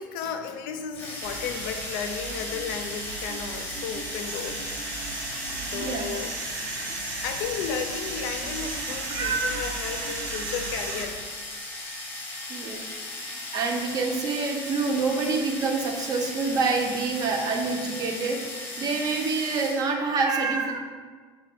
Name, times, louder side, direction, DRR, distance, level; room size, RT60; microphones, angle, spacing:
voice 1, 0.0-4.6 5.6-6.3 7.2-11.2, left 7 dB, 85° left, 6 dB, 0.4 m, -34 dB
sound 1, 0.9-19.9, left 2 dB, 20° left, 0.8 m, -37 dB
sound 2, 1.2-11.0, right 3 dB, 90° right, 0.6 m, -35 dB
voice 2, 5.8-6.1 9.1-9.8 12.5-12.8 13.1-18.4 18.8-20.8, right 4 dB, 40° right, 3 dB, 0.5 m, -27 dB
4.0 x 2.2 x 4.4 m, 1.5 s
cardioid pair, 135°, 10 cm